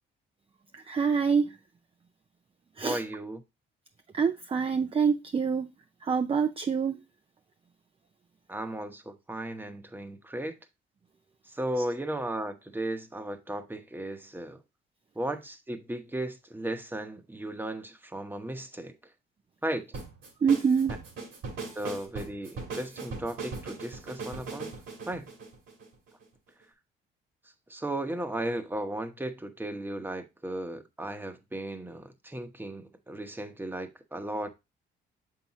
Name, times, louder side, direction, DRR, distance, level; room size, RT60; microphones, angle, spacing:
voice 1, 0.9-1.5 2.8-3.0 4.1-5.7 6.0-7.0 20.4-20.9, right 6 dB, 30° right, 0.5 m, -25 dB
voice 2, 2.8-3.4 8.5-10.6 11.5-14.6 15.1-18.9 19.6-19.9 21.7-24.7 25.1-25.3 27.7-34.5, right 1 dB, 10° right, 1.0 m, -35 dB
sound 1, 19.9-26.2, right 4 dB, 75° right, 2.6 m, -39 dB
6.9 x 5.7 x 2.9 m
cardioid pair, 90°, 20 cm